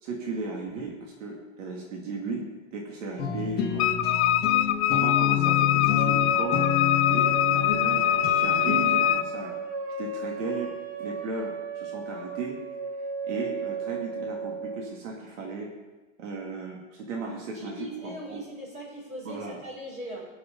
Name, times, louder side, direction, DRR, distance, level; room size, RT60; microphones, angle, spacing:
voice 1, 0.0-3.9 4.9-6.6 7.0-9.5 10.0-10.7 11.0-12.6 13.2-15.7 16.2-18.4 19.2-19.6, right 3 dB, 70° right, -1 dB, 2.5 m, -36 dB
sound 1, 3.2-9.1, left 10 dB, 25° left, 1.9 m, -29 dB
Wind instrument woodwind instrument, 3.8-9.3, left 12 dB, 55° left, 0.5 m, -23 dB
sound 2, 5.9-14.9, right 5 dB, 40° right, 2.4 m, -34 dB
voice 2, 17.5-20.3, equal, 20° right, -5 dB, 5.1 m, -39 dB
18.5 x 6.9 x 5.2 m, 1.2 s
supercardioid pair, 160°, 39 cm